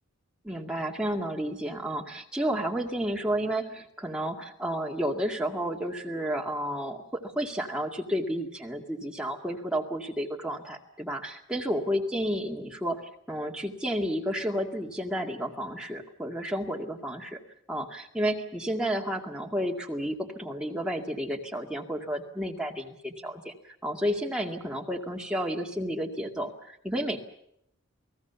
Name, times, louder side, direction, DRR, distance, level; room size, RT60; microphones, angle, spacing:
voice 1, 0.4-13.0 13.3-17.4 17.7-27.2, equal, 5° right, 0 dB, 2.1 m, -31 dB
29.0 x 18.5 x 7.1 m, 0.75 s
head